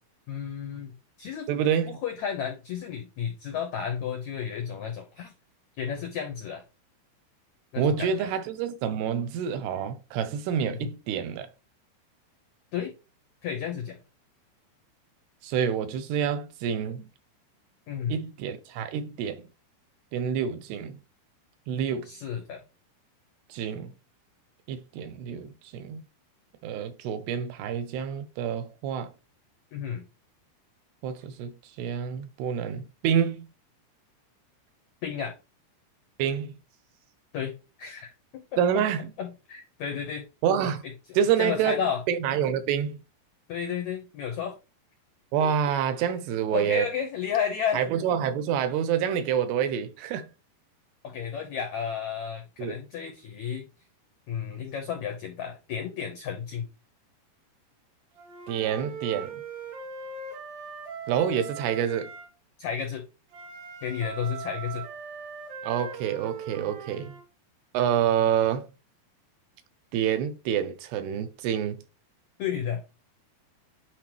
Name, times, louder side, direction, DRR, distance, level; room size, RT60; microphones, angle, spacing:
voice 1, 0.3-0.9 1.2-1.5 1.9-5.3 5.8-6.6 7.7-8.3 10.7-10.9 12.7-12.9 13.4-14.0 17.9-18.1 22.0-22.6 29.7-30.1 35.0-35.3 37.3-37.5 37.8-38.4 38.7-38.8 39.2-40.3 41.1-42.0 43.5-44.6 45.4-45.5 46.5-47.8 51.0-53.7 54.3-56.7 62.6-63.0 63.8-64.8 72.4-72.8, left 7 dB, 80° left, 1.6 m, -32 dB
voice 2, 1.5-2.0 7.8-11.5 15.4-17.1 18.1-19.4 20.1-21.0 21.7-22.1 23.5-23.9 24.7-26.0 26.6-29.1 31.0-33.5 36.2-36.6 38.6-39.1 40.4-40.8 41.2-41.8 42.1-43.0 45.3-46.9 47.7-50.3 52.6-52.8 58.5-59.4 61.1-62.1 65.6-67.1 67.7-68.7 69.9-71.8, right 8 dB, 80° right, 2.8 m, -27 dB
Wind instrument woodwind instrument, 58.2-62.3 63.3-67.2, right 6 dB, 65° right, 2.8 m, -40 dB
9.5 x 4.2 x 3.0 m
omnidirectional pair, 4.7 m